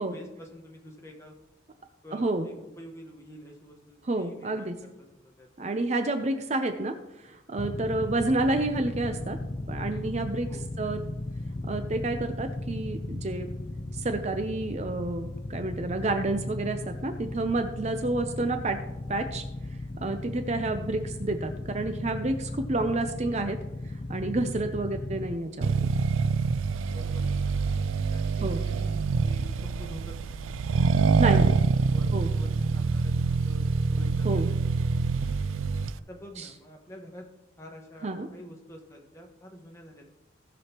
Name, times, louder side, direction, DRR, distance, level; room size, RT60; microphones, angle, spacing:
voice 1, 0.0-1.3 2.0-5.7 7.9-8.1 10.5-10.7 26.9-27.7 28.1-30.4 30.9-31.5 31.9-34.6 36.1-37.3 37.6-40.0, equal, 15° left, 1 dB, 1.3 m, -48 dB
voice 2, 2.1-2.5 4.1-4.7 5.6-9.4 9.7-10.5 10.8-11.0 11.6-13.5 13.9-18.8 19.1-19.4 20.0-23.6 24.1-25.9 28.4-28.6 31.2-31.6 32.1-32.3 34.2-34.6 36.4-36.5 38.0-38.3, right 2 dB, 35° right, 7 dB, 0.5 m, -29 dB
sound 1, 7.6-25.4, left 2 dB, 35° left, 0.4 m, -36 dB
Accelerating revving vroom, 25.6-36.0, right 4 dB, 90° right, 0.4 m, -25 dB
17.5 x 6.2 x 3.0 m, 0.99 s
head